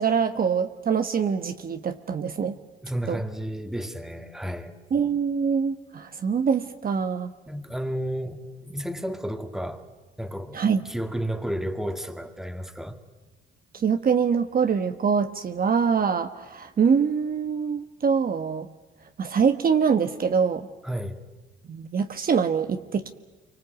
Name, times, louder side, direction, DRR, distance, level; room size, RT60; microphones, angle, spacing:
voice 1, 0.0-2.5 3.1-3.2 4.9-7.3 10.5-10.8 13.7-18.7 19.2-20.7 21.7-23.1, right 6 dB, 45° right, 8 dB, 1.3 m, -24 dB
voice 2, 2.8-4.7 7.5-9.9 10.2-13.0 20.8-21.2, equal, ahead, 7 dB, 2.2 m, -32 dB
27.5 x 24.5 x 8.2 m, 1.1 s
cardioid pair, 90°, 20 cm